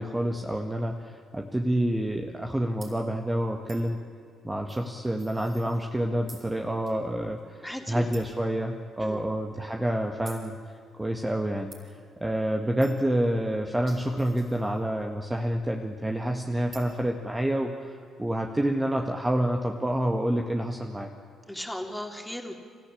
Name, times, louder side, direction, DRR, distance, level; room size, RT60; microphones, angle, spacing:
voice 1, 0.0-4.0 4.4-10.6 11.0-11.7 12.2-17.9 18.2-21.1, right 1 dB, 15° right, 3 dB, 1.8 m, -28 dB
sound 1, 2.8-3.0 3.7-3.9 4.7-6.0 6.3-6.5 6.9-7.0 7.4-7.5 8.1-8.4 9.0-9.1 10.2-10.5 11.7-11.8 12.8-13.1 13.6-15.0 16.7-17.0, right 3 dB, 45° right, 7.0 m, -49 dB
voice 2, 7.6-8.1 9.0-9.2 21.5-22.5, left 1 dB, 5° left, 3 dB, 3.4 m, -36 dB
27.0 x 15.0 x 8.7 m, 2.2 s
figure-of-eight pair, 45°, 0 cm